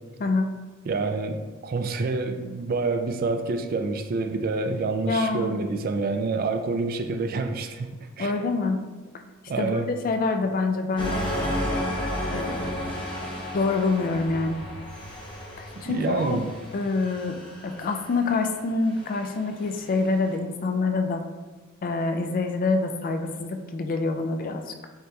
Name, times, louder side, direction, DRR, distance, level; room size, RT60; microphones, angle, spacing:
voice 1, 0.2-0.5 5.1-5.5 8.2-8.8 9.6-11.1 12.3-13.0 13.5-14.6 15.6-16.4 16.7-17.4 17.6-21.2 21.8-24.9, left 3 dB, 40° left, 6 dB, 0.3 m, -26 dB
voice 2, 0.9-8.3 9.5-9.9 15.9-16.5, right 3 dB, 45° right, 7 dB, 0.3 m, -27 dB
sound 1, 11.0-20.2, left 1 dB, 20° left, 0.7 m, -33 dB
7.9 x 2.9 x 2.3 m, 1.3 s
head